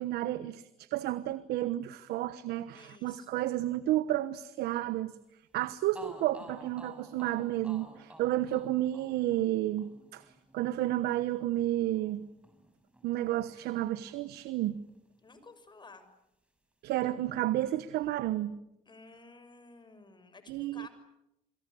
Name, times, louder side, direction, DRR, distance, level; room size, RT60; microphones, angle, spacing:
voice 1, 0.0-5.2 5.5-12.3 13.0-14.8 16.8-18.6 20.5-20.9, right 14 dB, 70° right, 1.2 m, -31 dB
voice 2, 2.7-3.3 15.2-16.1 18.9-20.9, left 3 dB, 25° left, 6.4 m, -53 dB
sound 1, 5.5-5.6 5.9-13.8 14.1-15.2, right 1 dB, 5° right, 7.3 m, -53 dB
29.0 x 22.5 x 8.5 m
supercardioid pair, 85°, 17 cm